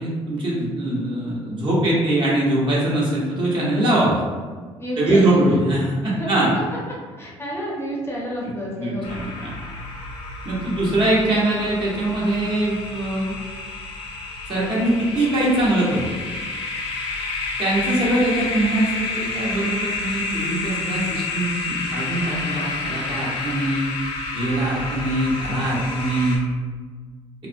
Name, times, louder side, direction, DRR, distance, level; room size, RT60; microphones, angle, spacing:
voice 1, 0.0-4.2 5.0-6.5 8.4-9.5 10.4-13.3 14.5-16.1 17.6-23.8 24.3-26.5, right 1 dB, 45° right, -6 dB, 0.9 m, -22 dB
voice 2, 4.8-5.5 6.1-9.1, equal, 20° left, -4 dB, 0.6 m, -30 dB
sound 1, 9.0-26.4, left 3 dB, 60° left, 0.6 m, -30 dB
2.4 x 2.0 x 2.5 m, 1.5 s
cardioid pair, 85°, 11 cm